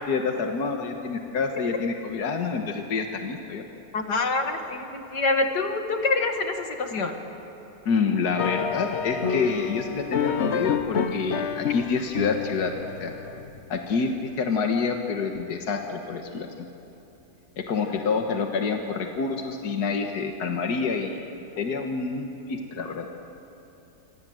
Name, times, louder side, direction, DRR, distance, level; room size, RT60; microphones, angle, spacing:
voice 1, 0.1-3.6 7.9-12.7 13.0-13.1 13.7-16.7 17.6-21.2 21.6-23.1, left 5 dB, 75° left, 3 dB, 2.0 m, -27 dB
voice 2, 3.9-7.1, left 3 dB, 90° left, 5 dB, 2.5 m, -26 dB
sound 1, 8.4-13.6, left 6 dB, 50° left, 1.1 m, -29 dB
27.0 x 25.5 x 7.8 m, 2.9 s
omnidirectional pair, 1.7 m